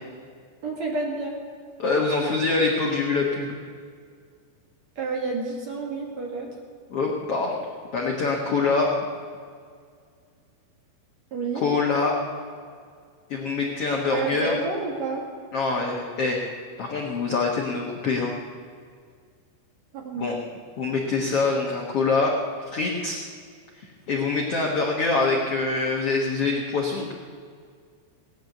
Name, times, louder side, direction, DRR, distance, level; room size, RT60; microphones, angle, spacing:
voice 1, 0.6-1.3 5.0-6.5 11.3-11.6 14.1-15.2 19.9-20.3, right 3 dB, 45° right, -1 dB, 2.7 m, -29 dB
voice 2, 1.8-3.6 6.9-7.6 7.9-8.9 11.5-12.2 13.3-14.6 15.5-16.4 16.8-18.3 20.1-20.4 20.8-22.3 22.7-23.2 24.1-27.1, left 4 dB, 80° left, -1 dB, 1.3 m, -24 dB
17.5 x 10.0 x 7.9 m, 2.1 s
omnidirectional pair, 5.1 m